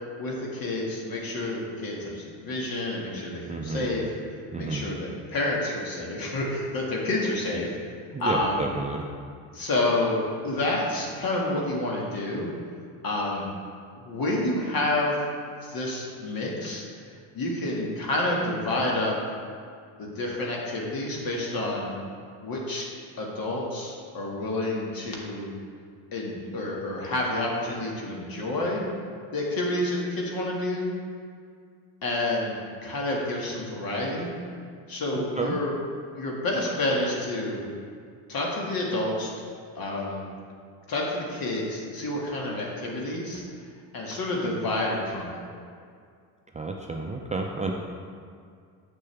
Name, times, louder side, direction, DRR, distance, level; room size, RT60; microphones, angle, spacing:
voice 1, 0.2-4.1 4.5-7.8 8.2-8.6 9.5-12.5 13.0-13.5 14.0-15.3 15.6-16.9 17.3-19.2 20.0-21.9 22.4-22.9 23.2-25.5 26.1-28.8 29.3-30.9 32.0-32.5 32.8-34.3 34.9-35.7 36.2-37.6 38.3-39.3 39.8-40.2 40.9-43.4 43.9-45.3, left 2 dB, 45° left, -2 dB, 2.0 m, -29 dB
voice 2, 3.5-3.9 4.5-4.9 8.1-9.0 35.2-35.6 46.5-47.7, right 3 dB, 15° right, 1 dB, 0.5 m, -31 dB
8.1 x 6.4 x 3.4 m, 2.2 s
hypercardioid pair, 70°, 47 cm